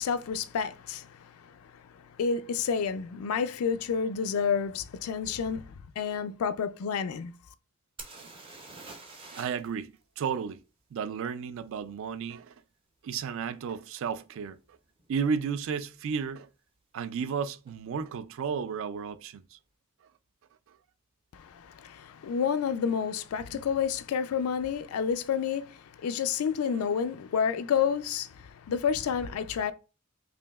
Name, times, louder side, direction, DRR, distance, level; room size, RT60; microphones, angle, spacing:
voice 1, 0.0-7.3 21.3-29.7, left 7 dB, 85° left, 0.4 m, -30 dB
sound 1, 8.0-9.7 10.0-10.1 13.5-13.6 14.2-14.4 14.6-15.2 17.3-17.4 17.6-17.7, right 3 dB, 25° right, 0.6 m, -46 dB
voice 2, 9.3-10.6 10.9-12.5 13.0-14.6 15.1-16.5 16.9-19.6 20.7-20.8 23.5-23.6 26.7-26.9, right 6 dB, 65° right, 0.3 m, -33 dB
5.0 x 2.7 x 2.3 m
head